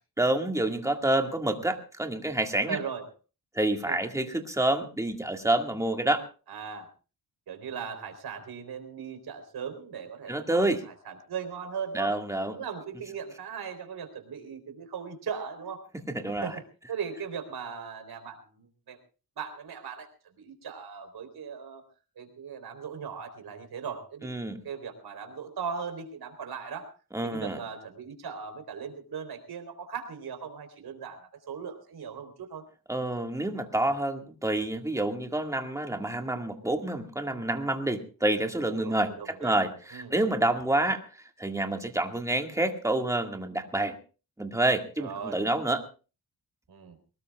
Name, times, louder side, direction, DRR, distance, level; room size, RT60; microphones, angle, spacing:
voice 1, 0.2-2.8 3.6-6.2 10.3-10.8 11.9-12.6 16.1-16.6 24.2-24.6 27.1-27.6 32.9-41.0 41.4-44.0 44.4-45.8, right 1 dB, 10° right, 4 dB, 1.9 m, -28 dB
voice 2, 2.7-3.1 3.9-4.0 6.5-6.9 7.5-12.1 12.5-15.8 16.4-16.6 16.9-19.0 19.4-21.8 22.2-26.9 27.2-32.6 38.7-39.6 39.9-40.1 45.0-45.4 46.7-47.0, right 6 dB, 70° right, 7 dB, 3.9 m, -38 dB
23.5 x 19.5 x 2.4 m, 0.35 s
wide cardioid pair, 155°, 40 cm